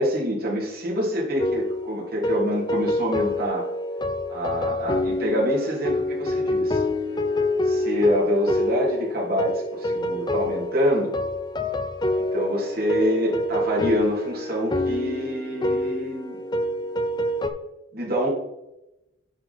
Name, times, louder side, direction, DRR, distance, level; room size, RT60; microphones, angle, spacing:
voice 1, 0.0-3.6 4.3-6.8 7.6-11.2 12.3-16.4 17.9-18.3, equal, 50° right, -4 dB, 2.6 m, -26 dB
sound 1, 1.4-17.5, left 1 dB, 20° left, 0.4 m, -26 dB
10.0 x 3.8 x 4.3 m, 0.91 s
head